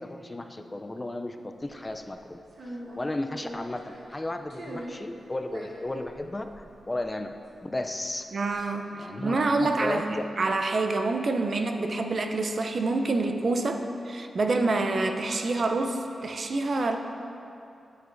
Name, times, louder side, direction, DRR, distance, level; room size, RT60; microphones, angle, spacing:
voice 1, 0.0-7.3 7.6-8.3 8.9-10.0, left 2 dB, 20° left, 6 dB, 0.3 m, -34 dB
sound 1, 1.6-2.0 2.5-4.2 4.5-5.0 5.4-7.7 8.0-8.5, equal, 75° right, 1.1 m, -42 dB
voice 2, 8.3-10.0 10.4-17.0, right 3 dB, 55° right, 5 dB, 0.5 m, -27 dB
9.4 x 7.1 x 2.5 m, 2.7 s
wide cardioid pair, 85°, 0 cm